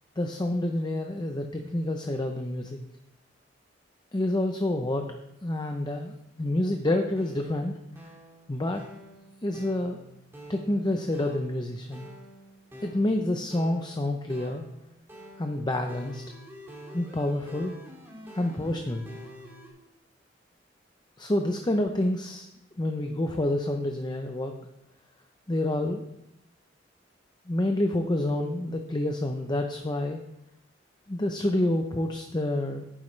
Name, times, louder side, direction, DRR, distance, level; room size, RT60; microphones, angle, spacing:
voice 1, 0.2-2.8 4.1-5.1 5.4-7.8 8.5-8.8 9.4-10.0 10.5-12.1 12.8-14.6 15.4-16.2 16.9-17.8 18.3-19.1 21.2-22.5 22.8-24.5 25.5-26.0 27.5-30.2 31.1-32.8, left 1 dB, 25° left, 5 dB, 0.7 m, -28 dB
sound 1, 7.2-19.7, equal, 15° right, 2.5 m, -47 dB
11.0 x 9.7 x 3.3 m, 0.84 s
head